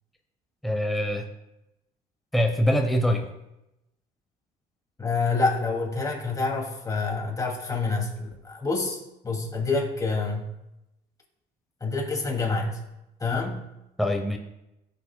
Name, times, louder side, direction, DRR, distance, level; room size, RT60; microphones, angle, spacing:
voice 1, 0.6-1.3 2.3-3.3 14.0-14.4, equal, ahead, 3 dB, 0.8 m, -24 dB
voice 2, 5.0-10.5 11.8-12.8 13.2-13.7, left 3 dB, 20° left, -1 dB, 2.4 m, -27 dB
15.0 x 7.1 x 2.2 m, 0.91 s
cardioid pair, 110°, 17 cm